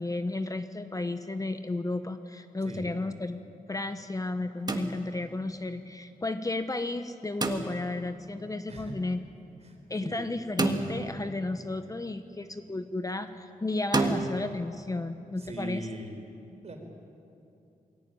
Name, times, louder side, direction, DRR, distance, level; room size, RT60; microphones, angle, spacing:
voice 1, 0.0-3.4 3.7-9.2 9.9-15.9, left 2 dB, 25° left, 9 dB, 0.9 m, -33 dB
voice 2, 2.6-3.0 8.7-8.9 9.6-9.8 10.0-10.2 15.4-16.2 16.6-16.8, right 1 dB, 45° right, 3 dB, 4.4 m, -39 dB
sound 1, 4.7-5.4 7.4-8.1 10.6-11.5 13.9-14.3, right 3 dB, 30° right, 1.7 m, -30 dB
22.0 x 17.0 x 9.2 m, 2.7 s
cardioid pair, 90°, 15 cm